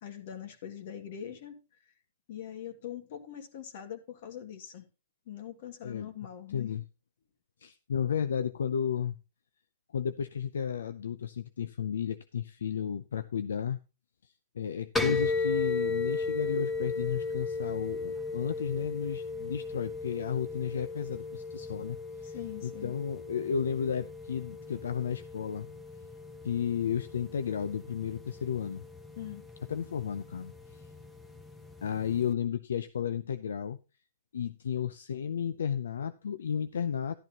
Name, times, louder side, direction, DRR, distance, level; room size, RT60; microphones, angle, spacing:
voice 1, 0.0-1.6 2.3-4.8 5.3-6.7 22.2-22.9 29.2-29.4, left 10 dB, 55° left, 2.1 m, -42 dB
voice 2, 6.5-6.8 7.6-9.2 9.9-13.8 14.5-22.4 22.6-25.7 26.4-28.8 29.7-30.9 31.8-33.8 34.3-37.2, left 7 dB, 80° left, 0.6 m, -33 dB
sound 1, 15.0-32.3, left 3 dB, 10° left, 1.3 m, -36 dB
12.0 x 11.0 x 3.0 m
hypercardioid pair, 130°, 0 cm